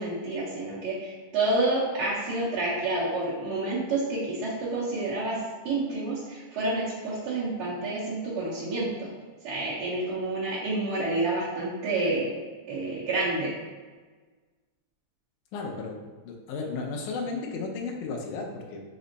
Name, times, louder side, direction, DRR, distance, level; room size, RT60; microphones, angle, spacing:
voice 1, 0.0-5.4 5.6-9.1 9.4-12.3 12.7-13.5, right 2 dB, 60° right, -12 dB, 1.6 m, -29 dB
voice 2, 15.5-18.8, left 4 dB, 85° left, 1 dB, 2.0 m, -34 dB
5.2 x 2.1 x 3.9 m, 1.4 s
omnidirectional pair, 3.5 m